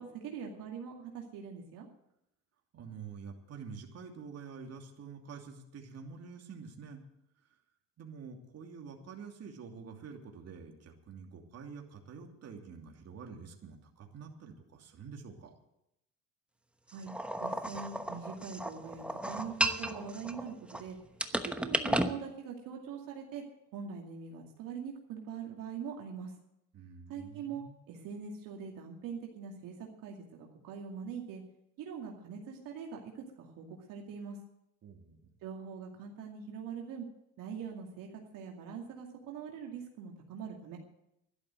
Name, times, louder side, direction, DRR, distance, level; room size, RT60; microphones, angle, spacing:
voice 1, 0.0-1.9 16.9-17.1 17.4-21.0 21.4-23.4 23.7-26.3 27.1-29.7 30.0-31.4 31.8-33.1 33.4-34.4 35.4-37.1 37.4-40.8, right 6 dB, 70° right, 1 dB, 2.4 m, -43 dB
voice 2, 2.7-7.0 7.4-7.5 8.0-15.5 26.7-27.8 34.8-35.3, right 5 dB, 45° right, 2 dB, 2.9 m, -47 dB
sound 1, 17.1-20.8 21.2-22.1, right 1 dB, 5° right, 1.0 m, -34 dB
12.0 x 12.0 x 7.8 m, 0.82 s
cardioid pair, 110°, 35 cm